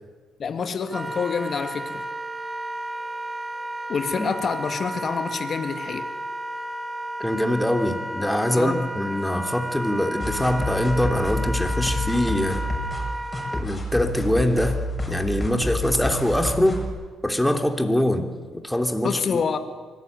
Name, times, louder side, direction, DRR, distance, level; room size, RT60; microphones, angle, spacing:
voice 1, 0.4-2.0 3.9-6.1 8.6-8.9 19.0-19.6, left 6 dB, 50° left, 8 dB, 1.8 m, -27 dB
Wind instrument woodwind instrument, 0.9-13.6, right 1 dB, 15° right, 2.4 m, -33 dB
voice 2, 7.2-12.7 13.5-14.8 15.1-16.9 17.2-19.4, left 1 dB, 5° left, 4 dB, 3.0 m, -23 dB
sound 1, 10.2-16.9, left 1 dB, 20° left, 7.3 m, -29 dB
24.5 x 18.5 x 9.6 m, 1.4 s
cardioid pair, 90°, 0 cm